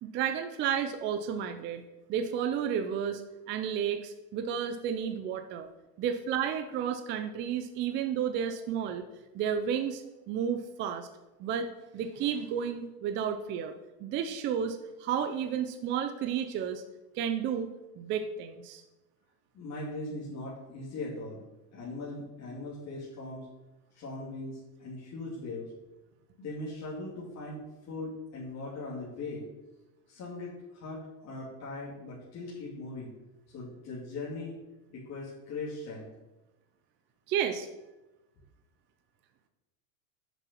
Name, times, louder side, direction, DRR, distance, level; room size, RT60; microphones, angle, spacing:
voice 1, 0.0-1.8 2.1-3.2 3.5-5.7 6.0-9.0 9.3-11.1 11.4-11.7 11.9-13.7 14.0-16.8 17.1-18.8 37.3-37.7, right 8 dB, 25° right, 7 dB, 0.4 m, -32 dB
voice 2, 19.5-21.4 21.7-23.5 23.9-25.7 26.4-29.4 30.1-33.1 33.5-34.6 34.9-36.1, left 2 dB, 35° left, -6 dB, 2.4 m, -40 dB
6.9 x 6.0 x 5.9 m, 1.0 s
supercardioid pair, 135°, 48 cm